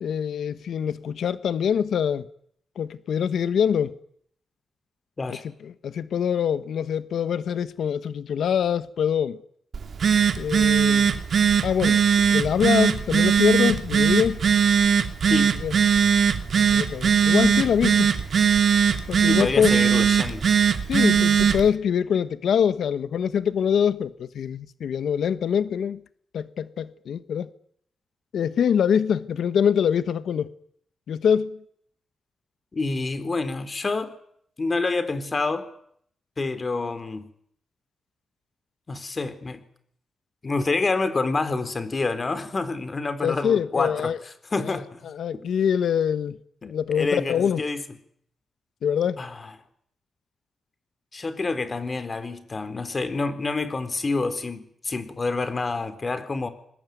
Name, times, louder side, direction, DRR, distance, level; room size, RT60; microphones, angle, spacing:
voice 1, 0.0-2.3 2.8-3.9 5.6-9.4 10.4-11.1 11.6-12.0 12.3-14.4 15.6-15.7 16.7-18.1 19.1-20.0 20.9-26.0 26.3-27.5 28.3-30.5 31.1-31.6 43.2-44.2 44.6-46.4 46.6-47.6 48.8-49.2, left 8 dB, 85° left, 1.3 m, -24 dB
Telephone, 9.7-21.7, right 7 dB, 65° right, 2.8 m, -20 dB
voice 2, 15.2-15.6 19.3-20.5 32.7-34.1 34.6-35.7 36.4-37.3 38.9-39.6 40.4-44.1 44.5-45.0 45.3-45.4 46.6-47.8 49.2-49.4 51.1-56.5, left 3 dB, 40° left, 4.0 m, -27 dB
27.0 x 21.0 x 9.4 m
cardioid pair, 80°, 0 cm